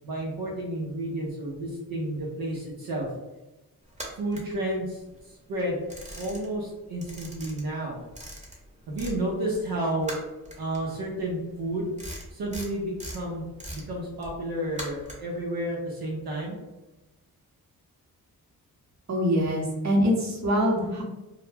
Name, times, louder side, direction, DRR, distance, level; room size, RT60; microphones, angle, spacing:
voice 1, 0.0-3.1 4.1-5.8 6.1-8.0 8.9-10.2 10.6-11.9 12.3-13.4 13.7-16.6, right 1 dB, 75° right, -3 dB, 0.6 m, -31 dB
sound 1, 3.9-5.2 5.5-6.7 6.9-9.2 9.5-15.4, right 1 dB, 20° right, 0.9 m, -41 dB
voice 2, 19.1-21.0, equal, 45° right, -1 dB, 0.8 m, -24 dB
2.1 x 2.1 x 3.2 m, 1.0 s
supercardioid pair, 50°, 37 cm